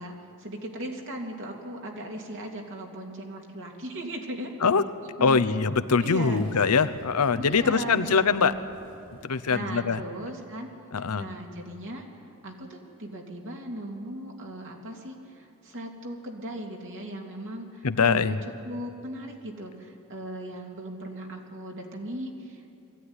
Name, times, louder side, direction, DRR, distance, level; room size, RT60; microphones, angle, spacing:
voice 1, 0.0-4.5 5.2-5.4 6.0-6.5 7.4-8.7 9.5-10.7 11.0-12.1 12.4-22.8, right 1 dB, 60° right, 1 dB, 2.7 m, -38 dB
voice 2, 5.2-8.5 9.2-10.0 10.9-11.3 17.8-18.4, left 5 dB, 85° left, 13 dB, 0.8 m, -23 dB
sound 1, 6.0-10.1, equal, 85° right, 5.8 m, -51 dB
21.0 x 15.0 x 9.7 m, 2.6 s
head